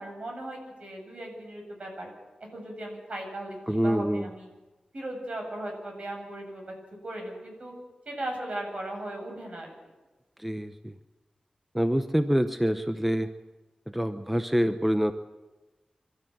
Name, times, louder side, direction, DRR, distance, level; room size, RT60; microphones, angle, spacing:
voice 1, 0.0-2.1 2.4-4.5 4.9-6.7 7.0-7.7 8.1-9.7, right 1 dB, 55° right, 1 dB, 7.8 m, -37 dB
voice 2, 3.7-4.3 10.4-11.0 11.7-13.3 13.9-15.1, equal, 5° right, 9 dB, 0.9 m, -26 dB
26.0 x 13.5 x 7.8 m, 1.1 s
wide cardioid pair, 80°, 2 cm